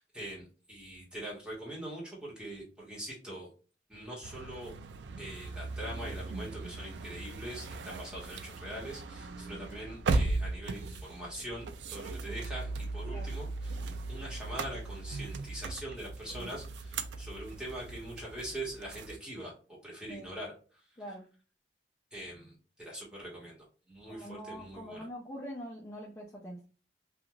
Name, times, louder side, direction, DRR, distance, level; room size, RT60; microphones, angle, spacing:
voice 1, 0.0-3.5 3.9-4.7 5.2-13.8 14.1-20.5 22.1-25.1, right 1 dB, 5° right, -5 dB, 1.1 m, -43 dB
sound 1, 4.2-19.2, right 3 dB, 80° right, 0.3 m, -38 dB
voice 2, 24.1-26.7, equal, 15° left, -4 dB, 0.4 m, -44 dB
2.4 x 2.4 x 2.9 m, 0.36 s
head